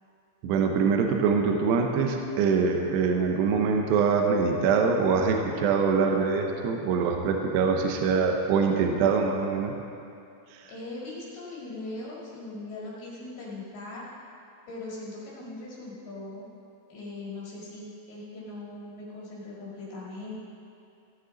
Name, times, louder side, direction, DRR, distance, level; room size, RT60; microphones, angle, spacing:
voice 1, 0.4-9.8 10.5-10.7, right 5 dB, 75° right, 3 dB, 2.7 m, -24 dB
voice 2, 10.7-14.1 14.7-16.5 16.9-20.3, left 2 dB, 60° left, -6 dB, 3.6 m, -40 dB
16.0 x 9.6 x 4.0 m, 2.6 s
omnidirectional pair, 5.4 m